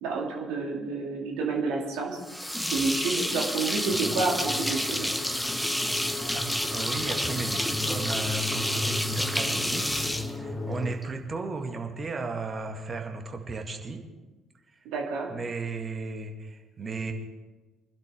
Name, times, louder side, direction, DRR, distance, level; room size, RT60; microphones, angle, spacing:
voice 1, 0.0-2.2 2.7-5.1 14.8-15.3, right 4 dB, 65° right, 0 dB, 2.6 m, -29 dB
sound 1, 2.2-11.0, equal, 5° left, 1.1 m, -30 dB
sound 2, 3.9-11.0, left 2 dB, 25° left, 2.1 m, -35 dB
voice 2, 6.3-14.0 14.7-14.8 15.3-17.1, right 4 dB, 35° right, 4 dB, 1.9 m, -35 dB
24.0 x 11.5 x 3.6 m, 1.2 s
figure-of-eight pair, 50°, 0 cm